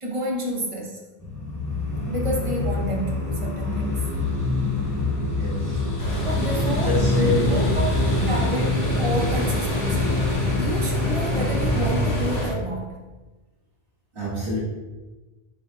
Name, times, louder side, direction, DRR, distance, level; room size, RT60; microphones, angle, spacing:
voice 1, 0.0-1.0 2.1-4.1 6.2-7.9 8.3-10.3 10.6-13.1, right 1 dB, 35° right, -1 dB, 0.7 m, -30 dB
sound 1, 1.2-12.2, left 2 dB, 20° left, 0.7 m, -25 dB
voice 2, 5.4-5.9 6.8-7.8 14.1-14.6, left 2 dB, 85° right, -10 dB, 1.9 m, -26 dB
sound 2, 6.0-12.5, equal, 85° left, 1.6 m, -28 dB
7.2 x 3.1 x 2.3 m, 1.2 s
omnidirectional pair, 1.1 m